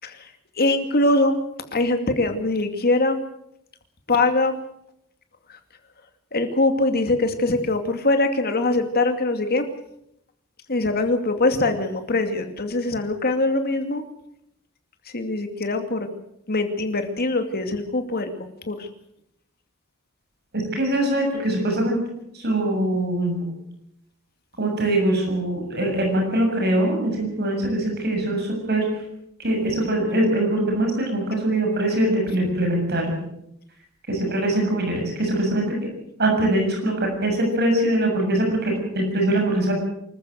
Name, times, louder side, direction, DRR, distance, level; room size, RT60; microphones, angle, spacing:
voice 1, 0.6-1.4 1.7-3.2 4.1-4.6 5.5-5.6 6.3-9.7 10.7-14.0 15.1-16.1 16.5-18.9, left 2 dB, 45° left, 7 dB, 2.5 m, -22 dB
voice 2, 20.5-22.0 22.4-23.4 24.6-28.8 29.4-33.2 34.1-35.7 36.2-39.7, right 1 dB, 50° right, 2 dB, 7.1 m, -22 dB
25.5 x 14.0 x 7.8 m, 0.77 s
head